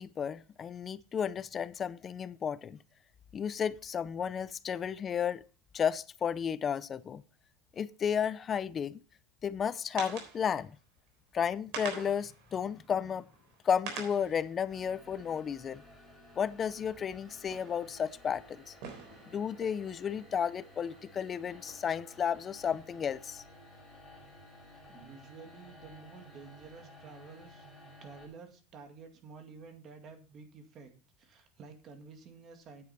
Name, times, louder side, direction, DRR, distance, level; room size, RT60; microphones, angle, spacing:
voice 1, 0.0-2.8 3.3-5.4 5.7-7.2 7.7-9.0 9.4-10.8 11.3-13.3 13.6-15.8 16.4-18.8 19.3-23.4, left 7 dB, 25° left, 0.4 m, -33 dB
sound 1, 9.8-10.7 11.1-11.2 11.5-16.3 16.8-21.1 21.5-22.6, right 5 dB, 65° right, 3.7 m, -47 dB
sound 2, 14.7-28.3, left 1 dB, ahead, 5.0 m, -55 dB
voice 2, 24.9-27.7 28.0-30.9 31.2-32.8, right 4 dB, 35° right, 2.0 m, -51 dB
9.5 x 8.2 x 4.1 m
supercardioid pair, 160°, 0 cm